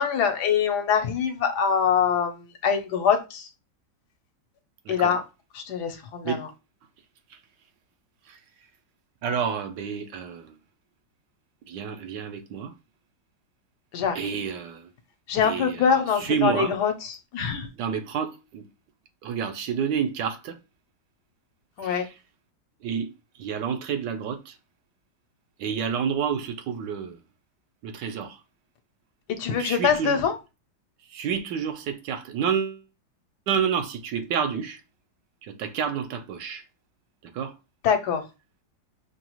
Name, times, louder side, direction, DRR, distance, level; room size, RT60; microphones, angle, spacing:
voice 1, 0.0-2.3 2.6-3.4 4.9-5.2 5.7-6.4 13.9-14.1 15.3-16.9 17.3-17.7 21.8-22.0 29.4-30.4 37.8-38.2, left 7 dB, 70° left, 1.2 m, -23 dB
voice 2, 4.9-5.2 6.2-6.4 8.3-8.4 9.2-10.5 11.7-12.7 14.1-14.8 15.4-16.8 17.8-18.7 19.2-20.6 21.8-22.1 22.8-23.1 23.4-24.5 25.6-27.2 27.8-28.4 29.5-30.2 31.1-32.8 33.5-34.8 35.4-36.6 37.3-37.5, right 7 dB, 75° right, 1.3 m, -29 dB
5.1 x 2.3 x 2.9 m
omnidirectional pair, 1.9 m